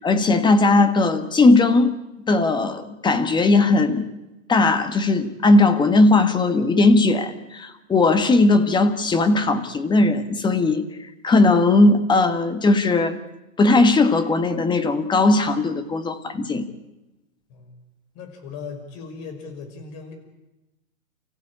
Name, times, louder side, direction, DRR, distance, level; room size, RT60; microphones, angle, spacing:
voice 1, 0.0-1.9 2.3-4.1 4.5-10.9 11.2-13.2 13.6-16.7, left 2 dB, 10° left, 10 dB, 1.4 m, -18 dB
voice 2, 18.1-20.1, left 5 dB, 35° left, 6 dB, 5.8 m, -38 dB
30.0 x 15.5 x 8.6 m, 1.0 s
hypercardioid pair, 145°, 41 cm